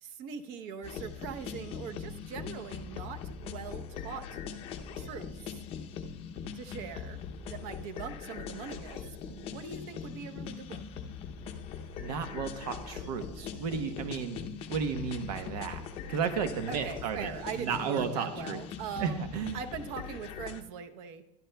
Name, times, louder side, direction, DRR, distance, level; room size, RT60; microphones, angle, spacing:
voice 1, 0.0-4.4 5.0-5.6 6.5-7.2 7.5-10.8 16.7-21.2, right 7 dB, 40° right, 7 dB, 0.9 m, -41 dB
sound 1, 0.8-20.6, left 6 dB, 25° left, 0.7 m, -41 dB
voice 2, 12.0-14.4 14.7-15.8 16.1-17.3 17.6-18.6 19.0-19.6, right 6 dB, 70° right, 7 dB, 1.1 m, -33 dB
21.5 x 12.0 x 2.3 m, 0.85 s
supercardioid pair, 170°, 21 cm